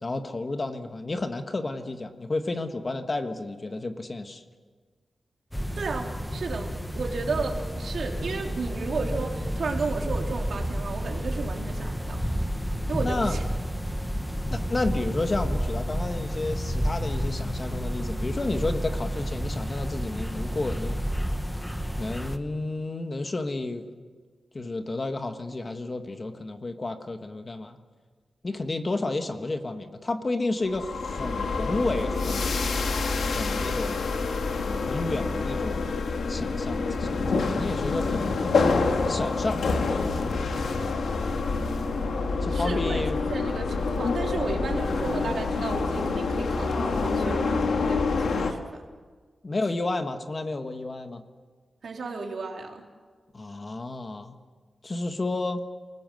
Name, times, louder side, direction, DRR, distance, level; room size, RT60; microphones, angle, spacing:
voice 1, 0.0-4.4 13.0-13.4 14.5-21.0 22.0-23.9 24.5-27.8 28.4-32.7 33.1-34.1 34.9-36.0 36.3-38.3 39.1-39.6 39.9-40.0 42.4-43.2 49.4-51.2 53.3-54.3 54.8-55.6, left 2 dB, 30° left, 6 dB, 1.4 m, -31 dB
sound 1, 5.5-22.4, equal, 5° left, 1.1 m, -30 dB
voice 2, 5.8-12.2 12.9-13.4 41.6-43.0 43.3-48.8 51.8-52.8, right 4 dB, 60° right, 1 dB, 3.5 m, -33 dB
sound 2, 30.7-48.5, left 4 dB, 80° left, 2.0 m, -27 dB
29.0 x 19.5 x 7.8 m, 1.5 s
wide cardioid pair, 175°, 0 cm